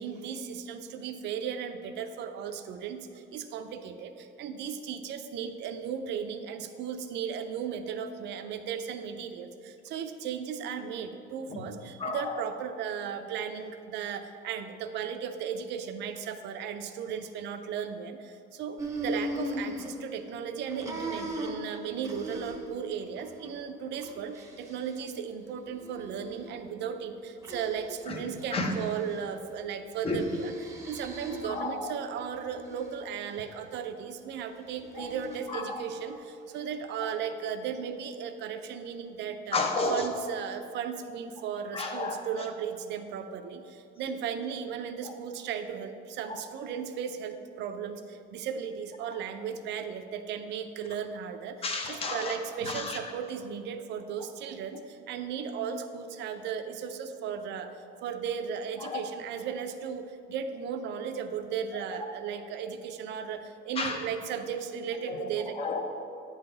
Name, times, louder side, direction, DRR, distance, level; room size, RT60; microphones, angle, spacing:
voice 1, 0.0-39.6 39.9-57.7 58.0-65.5, right 7 dB, 60° right, 8 dB, 0.5 m, -36 dB
voice 2, 12.0-12.4 28.1-28.2 28.5-28.7 30.0-30.2 31.4-31.9 35.0-35.1 35.5-35.8 37.0-37.1 39.5-40.1 41.7-42.2 45.0-45.1 46.3-46.4 51.6-52.4 52.6-53.0 58.8-59.0 63.8-64.0 65.1-65.3 65.6-65.8, left 3 dB, 30° left, 2 dB, 0.7 m, -32 dB
sound 1, 18.8-20.4 20.7-22.8 23.2-23.5 23.9-25.0 25.7-26.5 27.4-28.0 28.4-29.1 30.0-31.7 32.2-32.9 34.7-35.4, right 1 dB, 15° right, 0.7 m, -39 dB
9.1 x 3.9 x 3.8 m, 2.5 s
cardioid pair, 155°, 20 cm